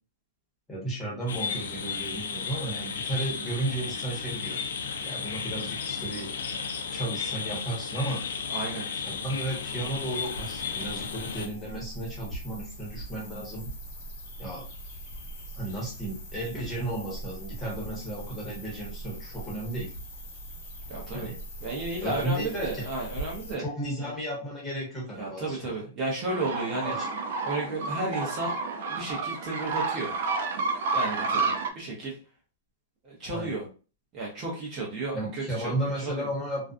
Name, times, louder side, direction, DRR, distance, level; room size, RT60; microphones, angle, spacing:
voice 1, 0.7-4.6 5.0-6.3 6.9-8.2 8.7-13.7 14.4-14.6 15.6-19.9 21.1-21.4 22.0-22.9 23.6-25.7 26.8-27.1 33.3-33.5 35.1-36.7, right 1 dB, 10° left, -4 dB, 0.9 m, -34 dB
sound 1, 1.3-11.5, left 6 dB, 90° left, 0.4 m, -34 dB
voice 2, 8.5-8.9 20.9-21.3 21.6-23.6 24.0-24.1 25.1-26.9 27.4-28.6 28.9-30.1 30.9-32.2 33.0-33.6 34.1-36.3, right 2 dB, 25° right, -3 dB, 0.7 m, -33 dB
sound 2, 8.9-23.6, right 1 dB, 40° left, 0.9 m, -42 dB
sound 3, 26.3-31.7, right 4 dB, 55° right, 0.4 m, -30 dB
2.5 x 2.3 x 2.4 m, 0.36 s
supercardioid pair, 165°, 0 cm